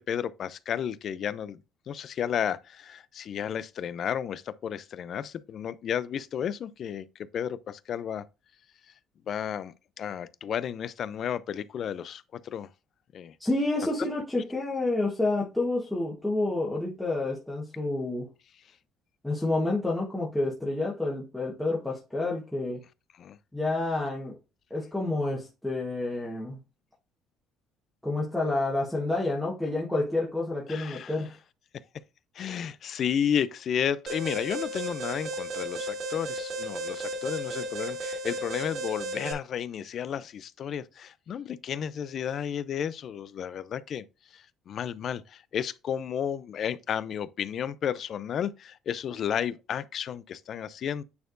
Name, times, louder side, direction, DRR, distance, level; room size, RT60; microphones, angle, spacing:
voice 1, 0.0-1.6 1.9-7.1 7.3-8.2 9.3-12.7 13.1-13.3 23.2-23.4 30.7-31.2 32.4-44.1 44.3-51.0, left 8 dB, 40° left, 0.3 m, -32 dB
voice 2, 13.4-18.3 19.2-22.8 23.5-24.3 24.7-26.6 28.0-31.4, left 2 dB, 5° left, 1.1 m, -29 dB
Alarm, 34.1-39.3, right 1 dB, 45° right, 1.9 m, -34 dB
9.3 x 4.4 x 2.5 m
cardioid pair, 160°, 0 cm